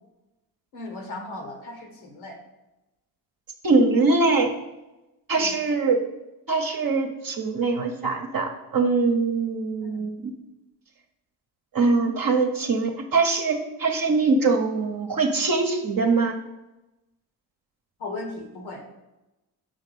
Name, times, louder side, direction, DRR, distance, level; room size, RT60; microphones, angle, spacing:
voice 1, 0.7-2.4 5.3-5.5 9.8-10.1 18.0-18.8, left 2 dB, 80° left, 4 dB, 1.3 m, -37 dB
voice 2, 3.6-4.5 5.3-6.0 6.5-10.3 11.7-16.4, right 3 dB, 45° right, 2 dB, 0.9 m, -22 dB
5.9 x 4.1 x 5.4 m, 1.0 s
hypercardioid pair, 40°, 47 cm